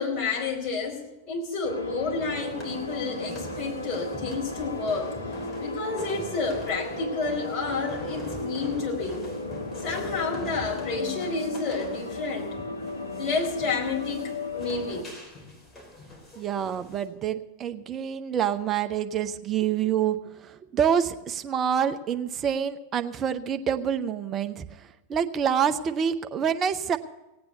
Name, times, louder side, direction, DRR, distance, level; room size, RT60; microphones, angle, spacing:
voice 1, 0.0-5.2 5.6-9.3 9.8-12.5 13.2-15.1, left 4 dB, 30° left, -1 dB, 4.5 m, -30 dB
sound 1, 1.6-15.0, left 2 dB, 80° left, 1.2 m, -35 dB
sound 2, 2.4-17.1, left 1 dB, 15° left, 3.7 m, -44 dB
voice 2, 16.4-27.0, right 8 dB, 25° right, 8 dB, 0.7 m, -27 dB
17.5 x 8.8 x 6.8 m, 1.0 s
figure-of-eight pair, 90°, 0 cm